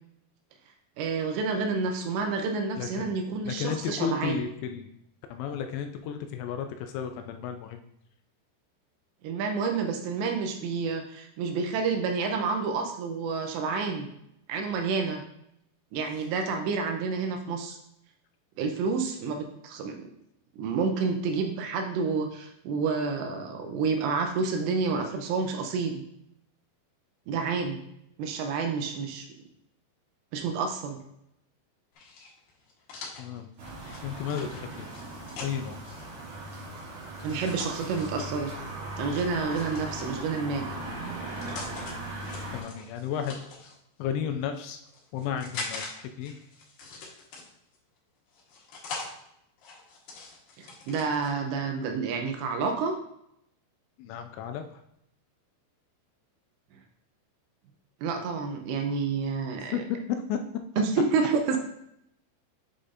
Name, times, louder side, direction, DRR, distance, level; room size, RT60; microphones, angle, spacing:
voice 1, 1.0-4.4 9.2-14.1 14.5-15.2 15.9-17.8 18.6-20.1 20.6-26.0 27.3-27.8 28.2-29.3 30.3-31.0 37.2-38.5 39.0-40.7 50.6-52.9 58.0-59.8 60.8-61.6, right 4 dB, 85° right, 4 dB, 2.7 m, -29 dB
voice 2, 2.7-3.1 3.5-4.9 5.3-7.8 33.2-33.5 34.0-34.9 35.4-35.8 42.5-43.4 44.0-44.8 45.1-46.3 54.0-54.6 59.7-59.8 60.3-60.4, left 8 dB, 85° left, 6 dB, 2.7 m, -33 dB
sound 1, 31.9-36.1 37.2-38.3 39.1-40.4 41.1-41.9 42.2-43.8 44.4-45.9 46.2-47.8 48.3-49.1 49.6-51.3, left 3 dB, 65° left, 2.6 m, -42 dB
sound 2, 33.6-42.6, right 1 dB, 65° right, 1.7 m, -38 dB
8.6 x 4.9 x 2.6 m, 0.78 s
omnidirectional pair, 5.3 m